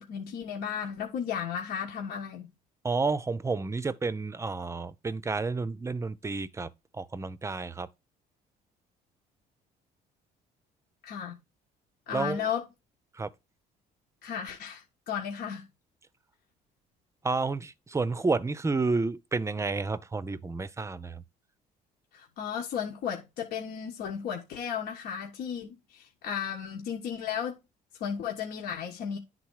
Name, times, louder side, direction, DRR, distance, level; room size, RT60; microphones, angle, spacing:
voice 1, 0.0-2.5 11.0-11.4 12.1-12.6 14.2-15.6 22.1-27.6 28.0-29.2, left 8 dB, 70° left, 1.3 m, -34 dB
voice 2, 2.8-7.9 12.1-12.5 13.1-13.3 17.2-21.2, right 3 dB, 15° right, 0.6 m, -30 dB
10.5 x 4.0 x 4.7 m
cardioid pair, 110°, 17 cm